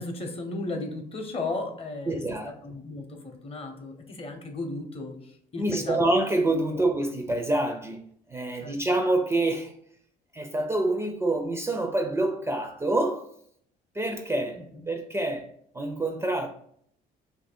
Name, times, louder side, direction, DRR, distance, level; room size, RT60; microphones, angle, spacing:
voice 1, 0.0-2.2 2.6-6.0 6.7-6.8 8.6-8.8 14.6-14.9, left 2 dB, 35° left, 0.7 m, -35 dB
voice 2, 2.1-2.5 5.6-8.0 8.3-9.7 10.3-13.2 13.9-15.5 15.7-16.5, right 2 dB, 15° right, 0.4 m, -26 dB
2.8 x 2.6 x 4.2 m
cardioid pair, 110°, 17 cm